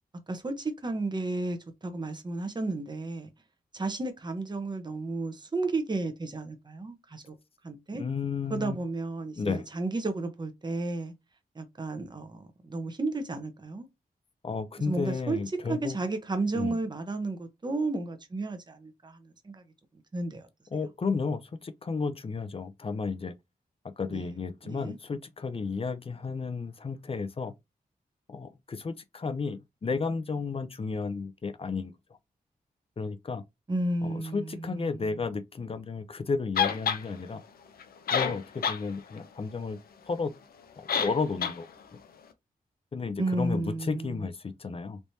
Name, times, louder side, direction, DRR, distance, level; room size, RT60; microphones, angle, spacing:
voice 1, 0.3-3.3 3.7-7.4 7.6-8.0 8.5-11.1 11.5-13.9 14.9-15.4 15.7-19.6 20.1-20.5 24.1-24.3 24.6-25.0 33.7-35.2 43.2-44.3, right 2 dB, 30° right, 0.9 m, -33 dB
voice 2, 8.0-8.8 9.4-9.7 14.4-16.0 16.5-16.8 20.7-23.3 24.0-27.5 28.3-31.9 33.0-33.4 34.0-37.4 38.1-39.8 40.1-40.3 40.8-41.7 42.9-45.0, left 4 dB, 40° left, 0.6 m, -33 dB
sound 1, 36.6-37.0 37.8-37.9 38.1-38.8 39.2-39.3 40.9-41.1 41.4-41.6, left 7 dB, 90° left, 0.6 m, -27 dB
3.3 x 3.0 x 2.7 m
wide cardioid pair, 85°, 15 cm